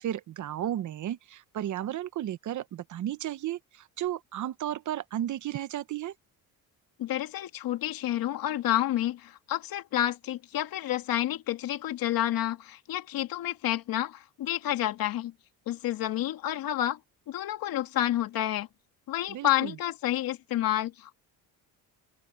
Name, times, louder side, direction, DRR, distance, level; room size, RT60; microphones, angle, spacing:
voice 1, 0.0-6.1 19.3-19.8, right 12 dB, 55° right, 1.0 m, -34 dB
voice 2, 7.0-15.3 15.7-17.0 17.3-18.7 19.1-21.1, left 13 dB, 70° left, 2.7 m, -29 dB
open air
cardioid pair, 120°, 37 cm